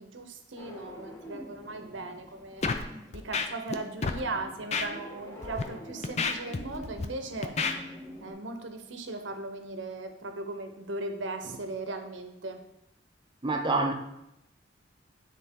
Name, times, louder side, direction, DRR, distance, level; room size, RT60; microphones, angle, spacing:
voice 1, 0.0-2.7 3.1-7.5 8.2-12.6, right 2 dB, 85° right, 0.8 m, -38 dB
sound 1, 0.6-8.3, equal, 20° left, 1.4 m, -46 dB
Scratching (performance technique), 2.6-2.8 3.1-3.8 4.0-4.2 4.7-4.9 5.4-5.6 6.0-7.1 7.4-7.7, left 4 dB, 35° left, 0.5 m, -29 dB
voice 2, 13.4-13.9, right 3 dB, 25° right, 0.7 m, -26 dB
9.7 x 3.9 x 3.7 m
head